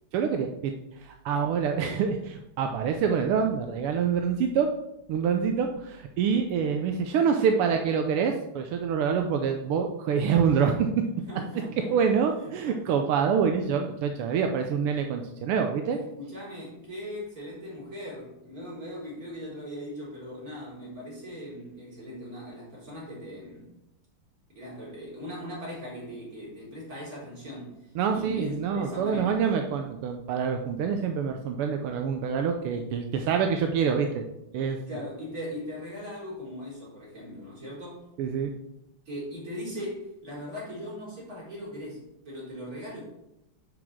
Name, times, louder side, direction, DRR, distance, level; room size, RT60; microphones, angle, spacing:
voice 1, 0.1-4.7 5.1-10.9 11.9-16.0 27.9-34.2 34.5-34.8 38.2-38.5, right 6 dB, 85° right, 4 dB, 1.6 m, -26 dB
voice 2, 11.3-11.9 12.4-12.8 15.9-23.7 24.5-29.4 32.8-32.9 34.9-38.0 39.1-43.0, equal, 40° right, -6 dB, 4.4 m, -39 dB
7.2 x 5.0 x 7.2 m, 0.87 s
omnidirectional pair, 2.4 m